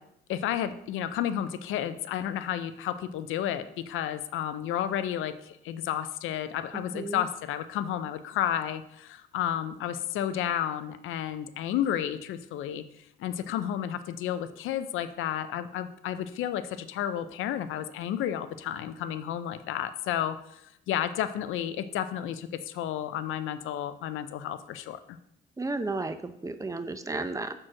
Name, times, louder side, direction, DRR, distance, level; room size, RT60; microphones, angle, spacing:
voice 1, 0.3-12.8 13.2-20.6 20.9-25.2, left 10 dB, 85° left, 11 dB, 0.6 m, -32 dB
voice 2, 6.7-7.2 25.6-27.5, right 3 dB, 15° right, 9 dB, 0.7 m, -33 dB
6.1 x 4.5 x 6.2 m, 0.76 s
cardioid pair, 90°, 20 cm